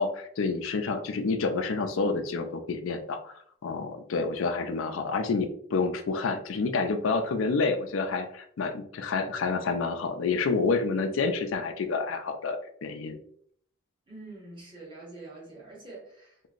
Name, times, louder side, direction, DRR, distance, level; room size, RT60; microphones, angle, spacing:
voice 1, 0.0-13.2, left 4 dB, 85° left, 7 dB, 0.4 m, -29 dB
voice 2, 14.1-16.4, right 2 dB, 25° right, -6 dB, 1.1 m, -45 dB
2.9 x 2.6 x 2.4 m, 0.62 s
head